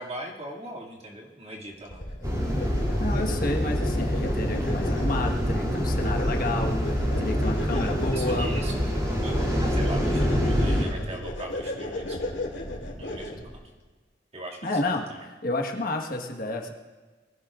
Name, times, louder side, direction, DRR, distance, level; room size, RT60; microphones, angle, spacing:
voice 1, 0.0-2.0 7.7-8.9 9.2-12.2 13.0-13.6 14.3-15.2, right 1 dB, 35° right, -3 dB, 2.4 m, -39 dB
sound 1, 1.9-13.6, left 1 dB, 75° left, 2.6 m, -35 dB
sound 2, 2.2-10.8, equal, 20° right, 3.0 m, -26 dB
voice 2, 3.0-8.5 14.6-15.1 15.4-16.7, left 2 dB, 50° left, 2 dB, 1.5 m, -30 dB
24.0 x 16.0 x 2.5 m, 1.4 s
head